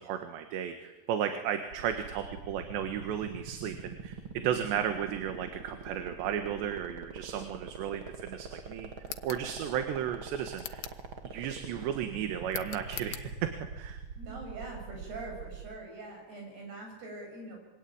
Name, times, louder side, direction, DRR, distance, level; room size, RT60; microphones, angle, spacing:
voice 1, 0.0-8.9 9.2-10.9 11.2-14.0, right 9 dB, 85° right, 7 dB, 3.8 m, -34 dB
sound 1, 1.7-15.7, right 5 dB, 40° right, 2.0 m, -43 dB
sound 2, 9.0-9.5 10.6-11.1 12.5-13.3, left 14 dB, 80° left, 3.2 m, -42 dB
voice 2, 14.2-17.6, right 2 dB, 70° right, 2 dB, 9.7 m, -43 dB
26.5 x 24.5 x 8.9 m, 1.1 s
omnidirectional pair, 4.9 m